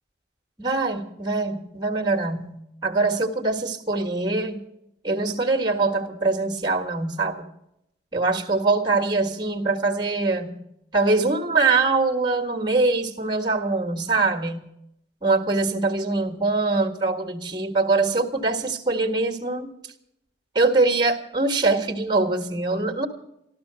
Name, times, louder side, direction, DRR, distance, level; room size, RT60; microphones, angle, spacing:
voice 1, 0.6-4.6 5.0-7.4 8.1-10.5 10.9-14.6 15.2-19.7 20.5-23.1, right 3 dB, 25° right, 3 dB, 1.5 m, -23 dB
14.0 x 12.5 x 6.8 m, 0.80 s
head